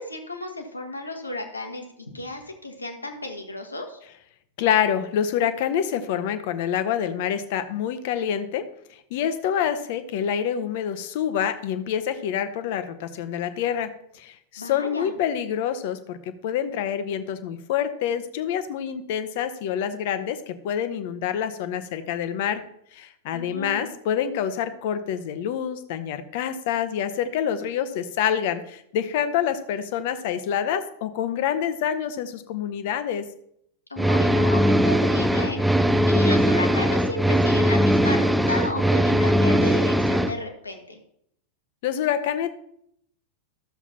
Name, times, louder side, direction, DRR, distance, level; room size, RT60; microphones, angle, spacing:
voice 1, 0.0-4.0 14.6-15.1 23.3-23.9 33.9-41.0, left 2 dB, 80° left, 4 dB, 1.5 m, -33 dB
voice 2, 4.6-8.7 9.1-13.9 14.1-22.6 22.9-33.2 41.8-42.5, left 9 dB, 50° left, 11 dB, 0.9 m, -27 dB
sound 1, 34.0-40.3, equal, ahead, 0.5 m, -20 dB
13.5 x 7.1 x 2.9 m, 0.72 s
figure-of-eight pair, 90°, 0 cm